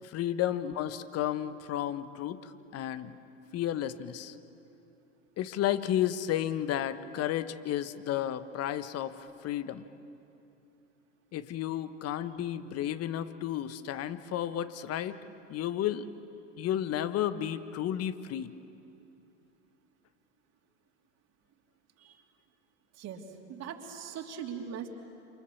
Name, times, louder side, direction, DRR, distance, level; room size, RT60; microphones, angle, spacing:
voice 1, 0.0-3.2 3.5-4.3 5.4-9.9 11.3-15.2 15.5-16.1 16.6-18.5, left 11 dB, 40° left, 12 dB, 1.4 m, -32 dB
voice 2, 22.9-23.2 23.5-24.9, right 8 dB, 40° right, 2 dB, 3.2 m, -40 dB
29.0 x 28.0 x 7.1 m, 2.8 s
hypercardioid pair, 85°, 38 cm